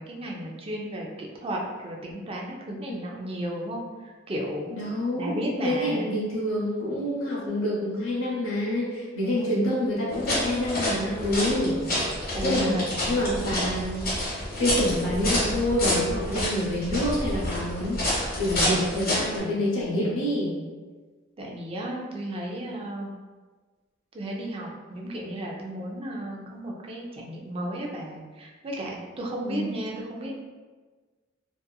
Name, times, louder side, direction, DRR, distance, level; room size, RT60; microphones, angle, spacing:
voice 1, 0.0-4.7 5.2-6.1 9.2-9.5 12.3-13.0 21.4-23.1 24.1-30.4, right 1 dB, 30° right, -1 dB, 0.4 m, -34 dB
voice 2, 4.7-11.8 12.4-12.8 13.1-14.2 14.6-20.5 29.4-29.7, left 1 dB, 80° left, -5 dB, 0.8 m, -27 dB
sound 1, 10.1-19.4, left 1 dB, 50° left, 1.1 m, -28 dB
2.8 x 2.4 x 2.2 m, 1.4 s
head